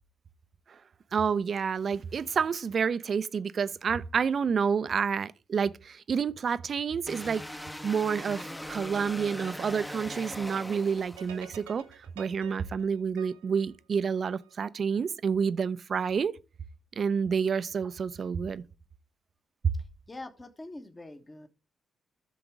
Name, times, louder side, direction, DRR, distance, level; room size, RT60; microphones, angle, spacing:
voice 1, 1.1-7.4 7.8-11.9 12.2-16.3 17.0-18.6, right 6 dB, 50° right, 0.6 m, -29 dB
sound 1, 7.1-11.6, left 1 dB, 10° left, 0.9 m, -41 dB
sound 2, 11.2-14.5, right 9 dB, 80° right, 1.4 m, -49 dB
voice 2, 20.1-21.5, left 2 dB, 25° left, 1.4 m, -44 dB
13.5 x 6.9 x 3.6 m
hypercardioid pair, 40°, 0 cm